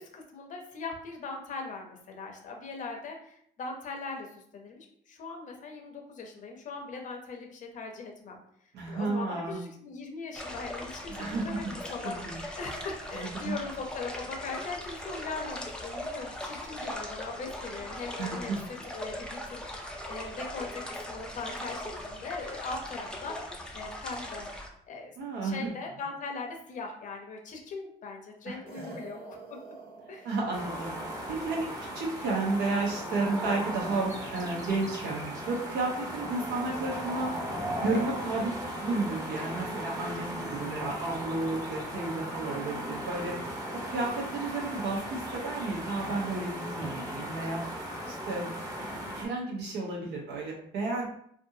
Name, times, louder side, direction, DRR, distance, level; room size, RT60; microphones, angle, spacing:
voice 1, 0.0-8.4 8.9-23.4 23.7-24.5 24.9-25.1 25.4-29.4 30.1-30.3 42.5-42.9 48.0-48.2, left 4 dB, 50° left, 2 dB, 0.7 m, -40 dB
voice 2, 8.7-9.6 11.1-11.6 12.0-12.3 13.1-13.5 18.2-18.6 25.2-25.7 28.5-28.6 30.2-31.7 31.9-37.3 37.8-43.5 43.9-47.6 48.1-48.5 49.2-51.0, right 3 dB, 80° right, -3 dB, 1.0 m, -32 dB
sound 1, 10.3-24.7, left 1 dB, 5° left, 0.4 m, -40 dB
sound 2, 28.7-33.1, right 4 dB, 65° right, 0.8 m, -49 dB
sound 3, 30.5-49.2, equal, 20° right, 0.9 m, -37 dB
2.6 x 2.5 x 2.7 m, 0.67 s
cardioid pair, 110°, 17 cm